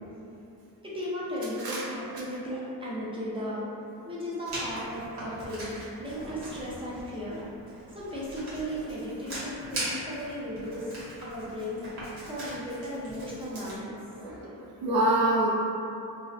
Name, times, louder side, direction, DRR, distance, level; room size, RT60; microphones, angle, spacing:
voice 1, 0.8-3.7 4.0-7.4 7.9-10.9 11.2-11.8 12.3-14.0, equal, 15° right, -8 dB, 0.5 m, -35 dB
Writing, 4.5-13.8, right 1 dB, 80° right, 1.0 m, -40 dB
voice 2, 14.2-14.5 14.8-15.5, right 1 dB, 65° right, -4 dB, 0.6 m, -25 dB
2.5 x 2.1 x 2.4 m, 2.7 s
wide cardioid pair, 135°, 39 cm